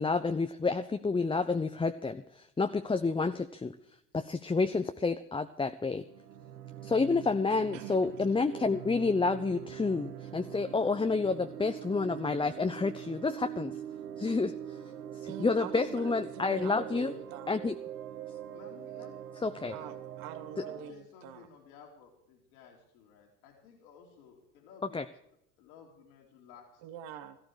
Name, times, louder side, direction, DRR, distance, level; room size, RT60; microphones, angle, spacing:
voice 1, 0.0-3.7 4.1-6.0 6.8-13.8 14.2-14.6 15.4-17.1 17.5-17.8 19.4-19.7 24.9-25.0, left 4 dB, 10° left, 8 dB, 0.7 m, -29 dB
sound 1, 5.9-20.9, right 9 dB, 80° right, 1.3 m, -43 dB
voice 2, 7.5-8.0 12.6-12.7 15.3-17.6 19.7-21.5 26.8-27.4, right 9 dB, 65° right, 8 dB, 1.7 m, -45 dB
voice 3, 18.5-19.1 19.8-20.0 20.5-25.0 25.6-26.8, left 6 dB, 70° left, 0 dB, 3.3 m, -55 dB
17.0 x 14.5 x 4.9 m, 0.77 s
hypercardioid pair, 65°, 45 cm